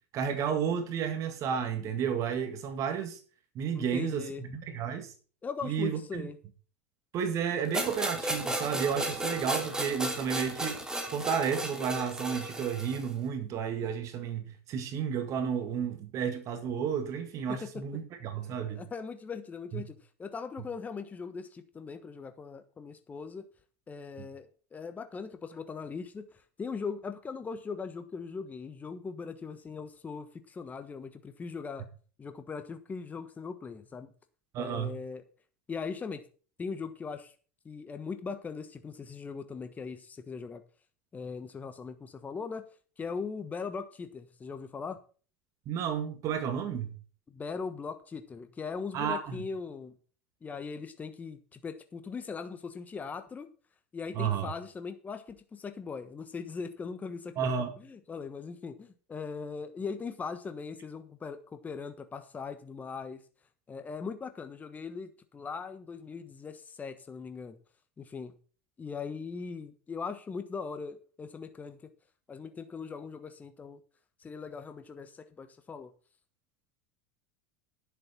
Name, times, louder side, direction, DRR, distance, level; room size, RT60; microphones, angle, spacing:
voice 1, 0.1-3.2 3.6-5.1 5.6-6.2 7.1-10.8 11.1-18.8 19.7-19.8 34.5-35.0 45.7-46.9 48.9-49.4 54.1-54.5 57.4-57.7, right 7 dB, 50° right, 2.0 m, -32 dB
voice 2, 3.7-4.4 5.4-6.4 17.5-17.8 18.7-23.5 23.9-31.9 32.2-34.1 34.6-35.2 35.7-36.2 36.6-37.3 37.6-40.6 41.1-42.6 43.0-45.0 47.3-50.0 50.4-53.5 53.9-57.5 57.8-63.2 63.7-67.6 68.0-68.3 68.8-71.9 72.3-73.8 74.2-75.9, left 5 dB, 20° left, 1.2 m, -40 dB
sound 1, 7.7-13.1, right 1 dB, 10° right, 2.9 m, -34 dB
10.0 x 7.5 x 5.8 m
hypercardioid pair, 95°, 7 cm